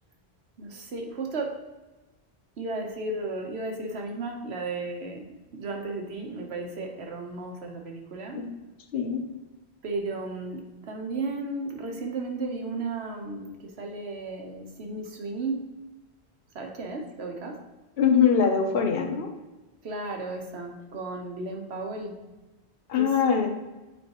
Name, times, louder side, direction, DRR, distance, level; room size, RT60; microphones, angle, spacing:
voice 1, 0.6-1.6 2.6-5.3 5.5-8.4 9.8-15.7 16.5-17.6 19.8-22.2 23.0-23.1, right 3 dB, 75° right, 2 dB, 1.3 m, -34 dB
voice 2, 8.9-9.2 18.0-19.3 22.9-23.5, left 7 dB, 65° left, 3 dB, 1.0 m, -22 dB
8.3 x 4.5 x 3.0 m, 1.1 s
omnidirectional pair, 1.1 m